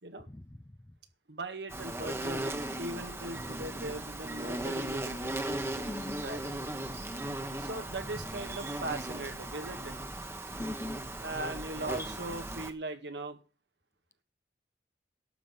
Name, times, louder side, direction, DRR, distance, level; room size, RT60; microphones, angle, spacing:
voice 1, 0.3-1.0 5.7-6.2 8.0-8.3 10.6-11.0, left 1 dB, 15° left, 0.6 m, -42 dB
voice 2, 1.3-5.3 6.1-6.5 7.6-10.0 11.2-13.4, right 2 dB, 75° right, 1.8 m, -39 dB
Insect, 1.7-12.7, right 1 dB, 15° right, 1.2 m, -37 dB
12.0 x 5.6 x 8.2 m
head